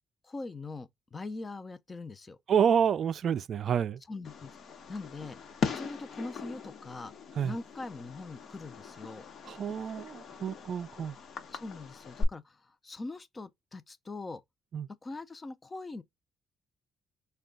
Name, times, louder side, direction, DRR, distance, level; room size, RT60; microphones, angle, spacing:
voice 1, 0.2-2.4 4.1-4.5 4.9-5.4 5.7-7.1 7.4-9.3 11.5-14.4 15.0-16.0, left 3 dB, 30° left, 0.5 m, -42 dB
voice 2, 2.5-4.0 7.4-7.5 9.5-11.2 14.7-14.9, right 8 dB, 60° right, 0.3 m, -28 dB
Fireworks, 4.2-12.2, left 5 dB, 60° left, 1.0 m, -39 dB
4.3 x 2.3 x 3.7 m
cardioid pair, 90°, 0 cm